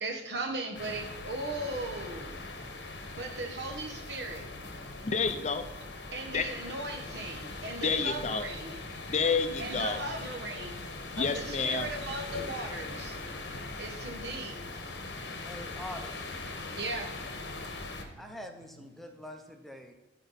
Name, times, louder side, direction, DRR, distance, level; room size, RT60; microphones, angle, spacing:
voice 1, 0.0-2.4 3.1-4.5 6.1-8.8 9.6-10.8 11.2-13.2 13.8-14.8 16.7-17.5 18.0-18.4, right 2 dB, 70° right, 5 dB, 1.1 m, -38 dB
sound 1, 0.7-18.0, left 2 dB, 80° left, 1.1 m, -41 dB
voice 2, 5.0-5.6 6.3-6.5 7.8-8.4 9.0-10.0 11.2-11.9, left 5 dB, 40° left, 8 dB, 0.5 m, -29 dB
voice 3, 15.4-16.3 18.2-19.9, left 1 dB, ahead, 4 dB, 0.7 m, -44 dB
13.0 x 4.6 x 4.1 m, 1.0 s
head